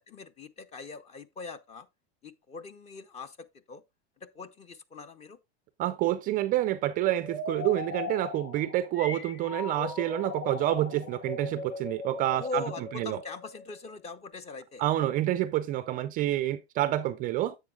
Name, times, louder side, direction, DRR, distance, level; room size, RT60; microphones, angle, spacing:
voice 1, 0.1-1.9 2.2-3.8 4.2-5.4 12.3-14.8, left 3 dB, 20° left, 0.6 m, -41 dB
voice 2, 5.8-12.6 12.9-13.2 14.8-17.6, right 14 dB, 25° right, 0.4 m, -28 dB
sound 1, 7.2-13.9, left 4 dB, 35° left, 2.0 m, -39 dB
10.5 x 7.8 x 2.3 m
supercardioid pair, 135°, 34 cm